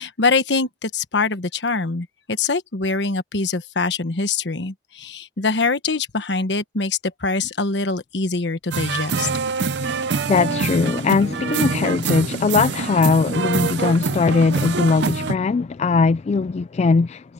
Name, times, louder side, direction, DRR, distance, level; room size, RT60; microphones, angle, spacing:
voice 1, 0.0-9.3, left 3 dB, 80° left, 1.3 m, -24 dB
sound 1, 8.7-15.3, right 5 dB, 70° right, 0.6 m, -25 dB
voice 2, 9.7-17.3, left 4 dB, 40° left, 0.3 m, -20 dB
head